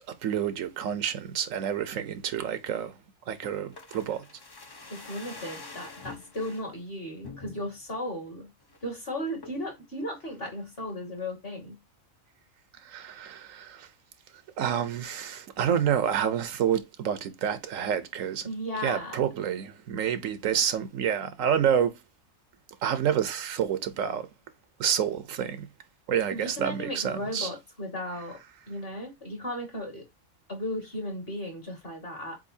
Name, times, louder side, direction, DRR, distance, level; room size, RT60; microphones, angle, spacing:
voice 1, 0.2-2.9 3.3-4.2 12.8-13.9 14.6-18.5 18.8-22.0 22.8-24.3 24.8-25.7 26.1-27.5, right 9 dB, 80° right, 1.1 m, -28 dB
sound 1, 3.4-6.7 7.2-7.9 8.3-8.4 8.6-8.9 9.4-9.7 10.2-10.9 11.2-11.3, left 3 dB, 25° left, 0.5 m, -46 dB
voice 2, 4.9-8.5 8.8-11.8 18.4-19.2 26.3-28.4 28.7-30.0 30.5-32.4, left 1 dB, 45° left, 2.4 m, -35 dB
7.5 x 2.7 x 2.6 m
omnidirectional pair, 1.4 m